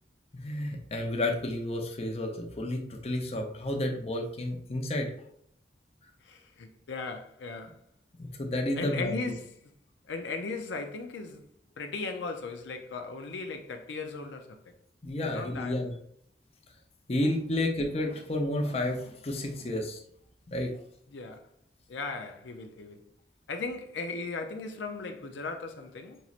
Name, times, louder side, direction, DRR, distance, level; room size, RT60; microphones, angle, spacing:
voice 1, 0.3-5.1 8.2-9.1 15.0-15.9 17.1-20.0 20.5-20.7, left 1 dB, 35° left, 0.6 m, -31 dB
voice 2, 6.2-7.8 8.8-9.5 10.1-11.5 11.8-14.6 15.2-15.8 21.1-21.5 21.9-23.0 23.5-26.2, left 3 dB, 90° left, 0.5 m, -37 dB
5.3 x 3.0 x 2.4 m
head